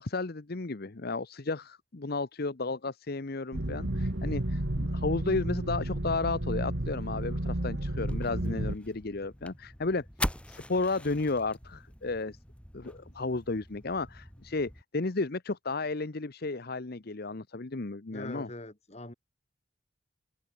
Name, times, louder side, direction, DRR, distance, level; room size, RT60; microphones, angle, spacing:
voice 1, 0.0-10.0 10.5-12.4 12.7-18.5, left 3 dB, 50° left, 0.9 m, -33 dB
sound 1, 3.5-8.7, right 1 dB, 60° right, 1.9 m, -32 dB
sound 2, 8.1-14.8, left 1 dB, 5° left, 6.1 m, -41 dB
voice 2, 18.1-19.1, left 1 dB, 30° left, 2.9 m, -42 dB
open air
head